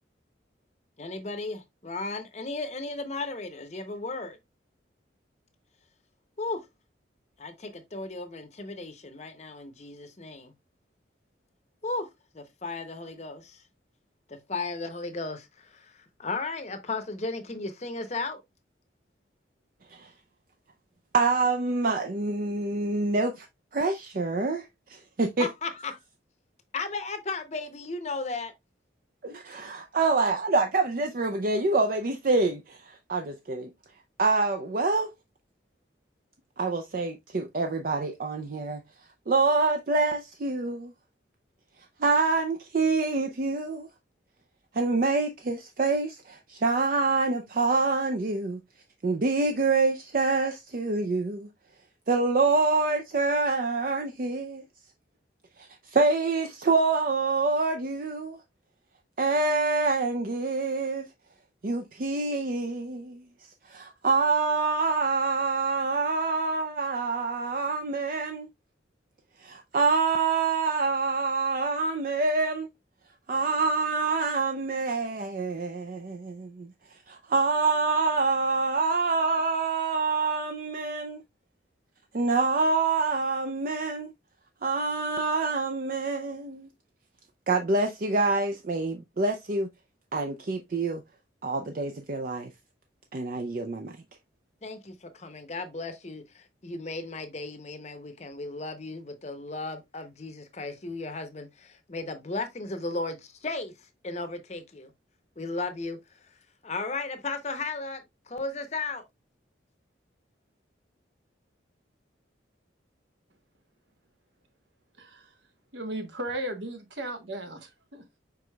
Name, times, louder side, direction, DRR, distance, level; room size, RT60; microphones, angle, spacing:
voice 1, 1.0-4.4 6.4-6.6 7.4-10.5 11.8-12.1 12.3-13.6 14.3-18.4 25.4-26.0 26.7-28.5 94.6-103.7 104.0-104.9 105.4-106.0 106.6-109.0, left 3 dB, 35° left, 0.7 m, -35 dB
voice 2, 21.1-23.5 23.7-25.5 29.2-33.7 34.2-35.1 36.6-38.8 39.3-40.9 42.0-43.9 44.7-48.6 49.0-51.5 52.1-54.6 55.9-58.4 59.2-61.1 61.6-63.2 63.7-68.5 69.4-72.7 73.3-76.7 77.1-81.2 82.1-84.1 84.6-86.7 87.5-89.7 90.1-91.0 91.4-92.5 93.1-94.0, right 3 dB, 45° right, 0.4 m, -26 dB
voice 3, 115.0-115.3 115.7-118.2, right 1 dB, 70° right, 1.2 m, -36 dB
5.0 x 4.7 x 2.3 m
head